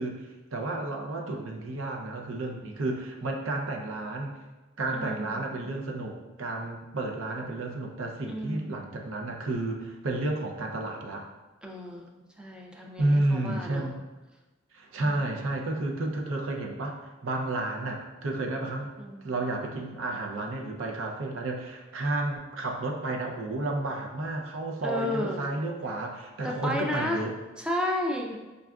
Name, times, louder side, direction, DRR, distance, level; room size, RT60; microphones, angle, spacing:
voice 1, 0.0-4.4 4.8-11.3 13.0-14.0 14.7-17.0 17.2-18.9 19.2-27.3, right 2 dB, 70° right, 2 dB, 0.5 m, -31 dB
voice 2, 4.9-5.7 8.3-8.8 11.6-13.9 19.0-19.3 24.8-25.4 26.4-27.2 27.6-28.4, left 1 dB, 5° right, 0 dB, 0.3 m, -33 dB
5.2 x 2.4 x 2.3 m, 1.2 s
head